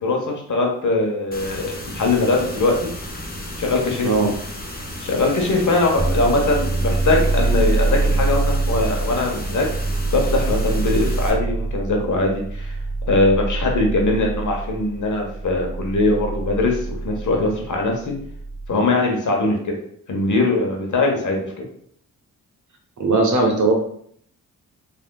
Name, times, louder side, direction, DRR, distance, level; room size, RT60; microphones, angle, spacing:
voice 1, 0.0-2.9 3.6-4.3 5.0-9.7 10.1-12.7 13.1-18.1 18.7-19.7 20.1-21.7, left 2 dB, 50° left, 1 dB, 1.0 m, -21 dB
sound 1, 1.3-11.3, left 1 dB, 25° left, 0.9 m, -33 dB
sound 2, 6.0-18.7, right 3 dB, 10° right, 0.5 m, -24 dB
voice 2, 23.0-23.7, right 3 dB, 45° right, 1 dB, 1.0 m, -18 dB
3.4 x 2.7 x 2.3 m, 0.65 s
hypercardioid pair, 40°, 39 cm